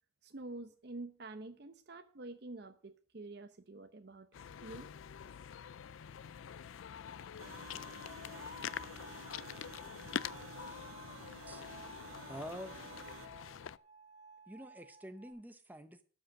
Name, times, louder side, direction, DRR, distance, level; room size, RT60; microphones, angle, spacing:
voice 1, 0.2-4.3 4.6-4.9, right 2 dB, 55° right, 7 dB, 0.8 m, -47 dB
sound 1, 4.3-13.8, left 8 dB, 85° left, 0.4 m, -45 dB
sound 2, 7.4-13.3, right 7 dB, 85° right, 0.6 m, -54 dB
sound 3, 8.3-15.3, right 4 dB, 25° right, 5.8 m, -58 dB
voice 2, 12.3-12.8 14.5-16.0, equal, 10° right, 8 dB, 0.7 m, -47 dB
12.5 x 5.3 x 7.5 m, 0.43 s
head